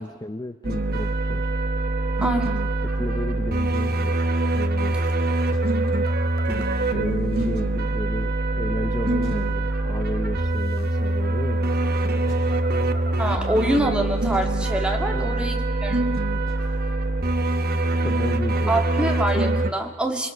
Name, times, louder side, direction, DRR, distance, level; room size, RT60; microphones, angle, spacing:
voice 1, 0.0-1.5 2.8-4.2 4.5-5.0 6.5-11.8 15.0-15.5 17.9-18.8, left 1 dB, 20° left, 9 dB, 0.7 m, -33 dB
sound 1, 0.6-19.7, right 2 dB, 45° right, 1.3 m, -24 dB
sound 2, 0.9-1.2 3.7-4.5 5.5-6.1 7.4-8.1 9.2-10.1 12.3-12.7 14.3-14.8 16.5-16.9 19.3-19.4, equal, 65° left, 6.4 m, -47 dB
voice 2, 2.2-2.6 13.2-16.0 18.7-20.3, right 1 dB, 5° right, 2 dB, 2.4 m, -25 dB
27.5 x 23.0 x 6.3 m, 1.2 s
head